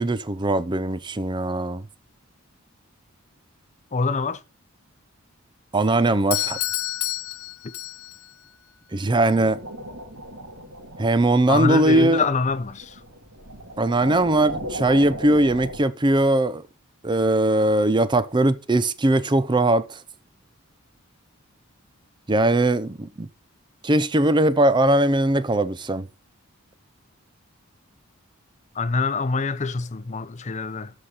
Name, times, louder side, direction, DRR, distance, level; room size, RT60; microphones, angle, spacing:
voice 1, 0.0-1.8 5.7-6.6 8.9-9.6 11.0-12.2 13.8-16.6 17.0-20.0 22.3-23.3 23.8-26.1, right 1 dB, 20° right, 0.5 m, -20 dB
voice 2, 3.9-4.4 11.5-13.0 28.8-30.9, left 4 dB, 35° left, 0.6 m, -25 dB
Doorbell, 6.3-8.3, left 16 dB, 80° left, 0.7 m, -29 dB
sound 1, 9.3-15.8, equal, 75° right, 2.2 m, -37 dB
13.0 x 5.0 x 4.0 m
head